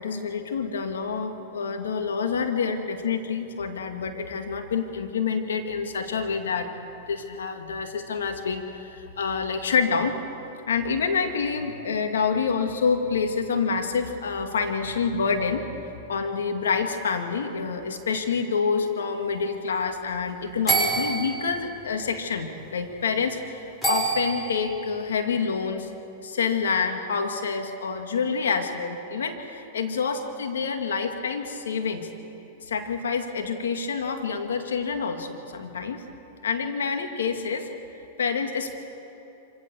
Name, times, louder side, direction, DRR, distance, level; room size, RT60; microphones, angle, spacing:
voice 1, 0.0-10.2 10.7-25.9 26.2-32.1 32.6-36.0 36.4-37.7 38.2-38.8, left 5 dB, 90° left, 5 dB, 2.2 m, -27 dB
sound 1, 20.7-21.5 23.8-24.7, right 3 dB, 10° left, 6.7 m, -25 dB
25.5 x 17.0 x 7.1 m, 3.0 s
hypercardioid pair, 125°, 0 cm